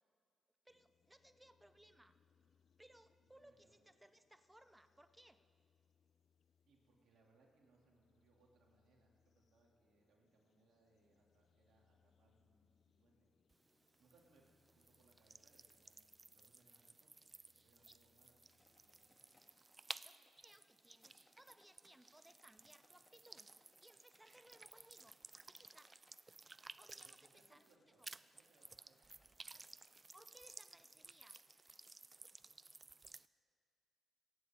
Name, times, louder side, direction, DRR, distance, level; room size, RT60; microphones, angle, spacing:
voice 1, 0.6-2.2 2.8-5.4 17.9-18.0 20.0-25.2 25.4-26.0 26.8-28.1 30.1-31.4, right 1 dB, 10° right, 11 dB, 0.7 m, -65 dB
sound 1, 0.7-19.1, left 7 dB, 60° left, 0.4 m, -79 dB
voice 2, 3.2-3.8 6.7-13.3 14.0-17.3 17.6-19.3 26.9-28.1 28.3-29.7, right 2 dB, 70° right, -1 dB, 2.7 m, -74 dB
sound 2, 13.5-27.7 28.0-33.3, right 3 dB, 35° right, 0.3 m, -57 dB
sound 3, 18.5-32.3, left 2 dB, 35° left, 1.8 m, -77 dB
23.5 x 9.4 x 3.7 m, 2.3 s
supercardioid pair, 50°, 0 cm